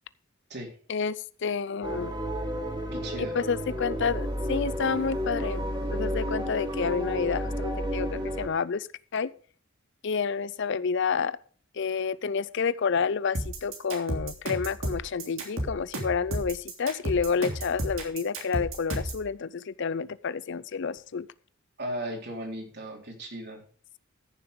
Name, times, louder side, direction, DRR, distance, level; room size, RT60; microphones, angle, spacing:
voice 1, 0.9-2.1 3.2-8.9 9.1-9.3 10.0-11.4 11.7-21.3, left 5 dB, 60° left, 19 dB, 0.5 m, -29 dB
sound 1, 1.8-8.5, equal, 25° right, 2.7 m, -31 dB
voice 2, 2.9-3.4 21.8-23.6, right 1 dB, 55° right, 0 dB, 3.8 m, -36 dB
sound 2, 13.3-19.2, right 1 dB, 75° right, 3.2 m, -32 dB
14.5 x 7.0 x 5.1 m, 0.42 s
head